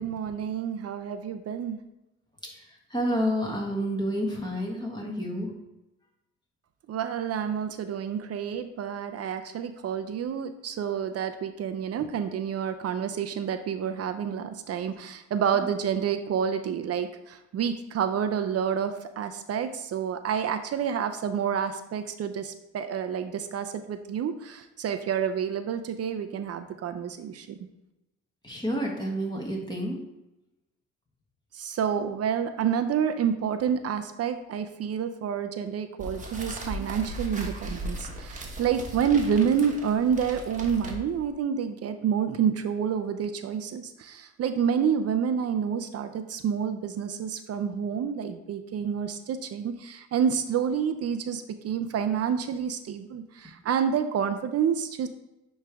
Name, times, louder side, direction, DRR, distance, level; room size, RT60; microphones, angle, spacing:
voice 1, 0.0-1.8 6.9-27.6 31.5-55.1, right 7 dB, 55° right, 9 dB, 0.5 m, -28 dB
voice 2, 2.5-5.5 15.5-15.7 28.4-30.0, equal, 15° left, -2 dB, 1.6 m, -29 dB
sound 1, 36.0-41.3, right 1 dB, 25° right, 1.3 m, -37 dB
9.1 x 3.2 x 3.5 m, 0.94 s
cardioid pair, 90°, 30 cm